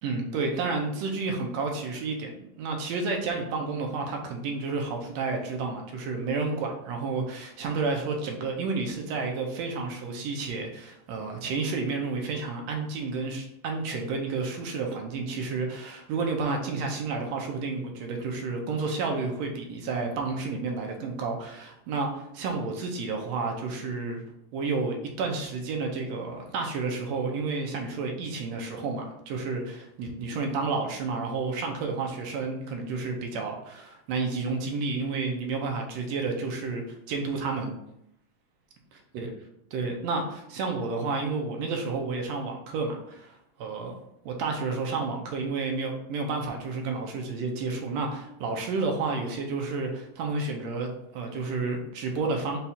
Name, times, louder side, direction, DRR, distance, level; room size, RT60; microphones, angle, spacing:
voice 1, 0.0-24.2 24.5-37.7 39.1-39.3 39.7-44.0 44.2-52.6, right 4 dB, 75° right, 2 dB, 1.7 m, -31 dB
5.4 x 2.4 x 4.1 m, 0.78 s
omnidirectional pair, 3.5 m